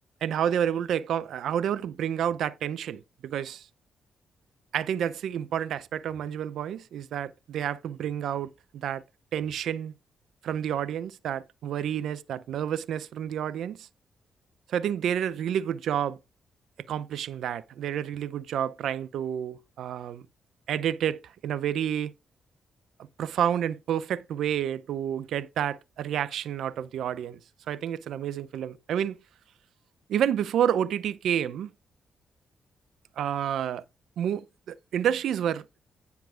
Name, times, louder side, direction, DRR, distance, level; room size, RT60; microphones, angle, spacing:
voice 1, 0.2-3.7 4.7-9.0 9.3-9.9 10.4-13.9 14.7-16.2 16.9-20.3 20.7-22.1 23.2-27.4 27.7-29.2 30.1-31.7 33.2-33.8 34.2-35.7, right 9 dB, 80° right, 0.6 m, -29 dB
9.4 x 7.1 x 3.7 m
supercardioid pair, 55°, 0 cm